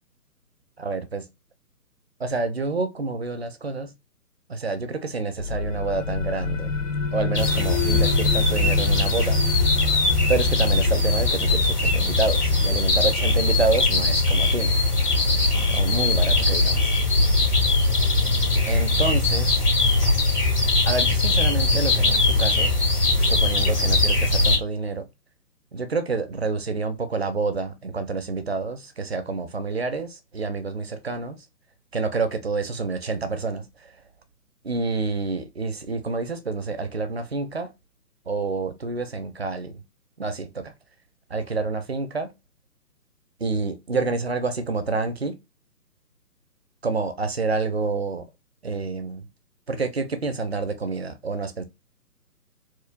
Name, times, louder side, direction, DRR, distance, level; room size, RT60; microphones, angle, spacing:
voice 1, 0.8-1.3 2.2-3.9 4.5-6.8 7.1-9.4 10.3-14.8 15.7-16.9 18.7-19.6 20.9-22.7 23.2-25.1 25.7-31.4 31.9-33.9 34.6-37.7 38.3-39.8 40.2-40.7 41.3-42.4 43.4-45.4 46.8-48.3 48.6-49.3 49.7-51.6, right 4 dB, 45° right, 0.5 m, -28 dB
sound 1, 5.4-16.8, left 5 dB, 55° left, 0.5 m, -31 dB
sound 2, 7.3-24.6, left 2 dB, 70° left, 2.0 m, -21 dB
4.5 x 2.1 x 2.4 m
figure-of-eight pair, 140°, 48 cm